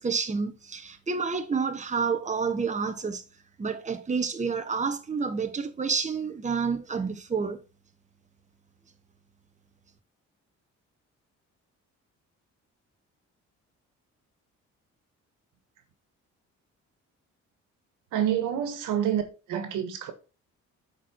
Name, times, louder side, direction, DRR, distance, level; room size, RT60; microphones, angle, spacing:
voice 1, 0.0-3.2 3.6-7.6, right 5 dB, 25° right, 1.1 m, -29 dB
voice 2, 18.1-19.2 19.5-20.1, right 10 dB, 90° right, 1.6 m, -27 dB
8.1 x 4.8 x 4.4 m
cardioid pair, 90°, 30 cm